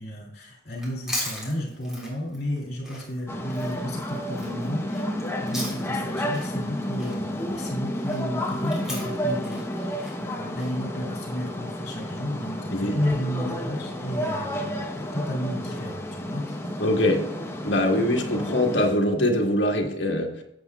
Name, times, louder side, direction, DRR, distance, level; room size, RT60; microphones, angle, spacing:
voice 1, 0.0-4.9 5.4-16.6, equal, 60° left, -1 dB, 2.5 m, -32 dB
Chewing mastication, 0.7-6.1 6.3-10.7, left 1 dB, 5° right, 3.3 m, -38 dB
sound 1, 3.3-18.9, equal, 15° left, 0.8 m, -31 dB
voice 2, 16.8-17.2 17.6-20.4, left 1 dB, 75° left, 2 dB, 1.5 m, -23 dB
13.0 x 7.9 x 2.3 m, 0.82 s
head